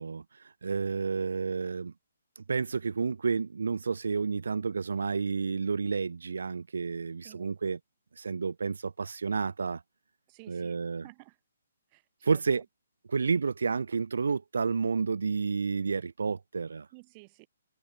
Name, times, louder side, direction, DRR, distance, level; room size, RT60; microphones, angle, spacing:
voice 1, 0.0-1.9 2.4-7.8 8.2-9.8 10.5-11.0 12.2-12.6 13.1-16.9, right 5 dB, 85° right, 0.6 m, -30 dB
voice 2, 7.2-7.6 10.3-11.4 11.9-12.4 16.9-17.5, right 30 dB, 25° right, 4.3 m, -53 dB
hypercardioid pair, 165°, 0 cm